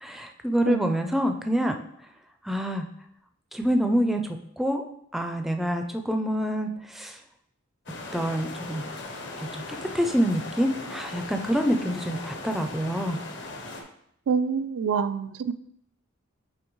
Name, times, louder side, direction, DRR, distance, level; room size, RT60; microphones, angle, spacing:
voice 1, 0.0-1.8 2.4-2.9 3.5-4.8 5.1-7.2 8.1-8.8 9.4-13.2, equal, ahead, 5 dB, 0.4 m, -26 dB
voice 2, 0.7-1.2 14.3-15.5, right 6 dB, 80° right, 11 dB, 0.4 m, -27 dB
sound 1, 7.9-13.8, left 2 dB, 55° left, 0.9 m, -38 dB
8.6 x 3.5 x 3.1 m, 0.71 s
head